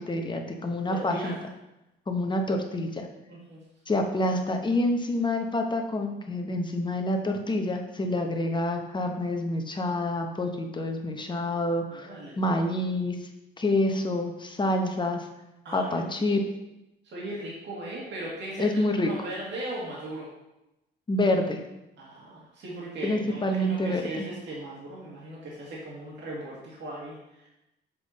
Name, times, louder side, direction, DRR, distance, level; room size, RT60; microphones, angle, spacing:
voice 1, 0.0-1.3 2.1-3.1 3.9-13.2 13.6-15.3 15.7-16.4 18.6-19.1 21.1-21.6 23.0-24.2, left 1 dB, 25° left, 3 dB, 0.9 m, -27 dB
voice 2, 0.9-1.3 3.3-3.6 11.9-12.4 15.6-16.4 17.0-18.7 19.0-20.3 22.0-27.5, right 1 dB, 65° right, -5 dB, 2.0 m, -38 dB
6.9 x 3.7 x 4.1 m, 0.94 s
cardioid pair, 90°, 20 cm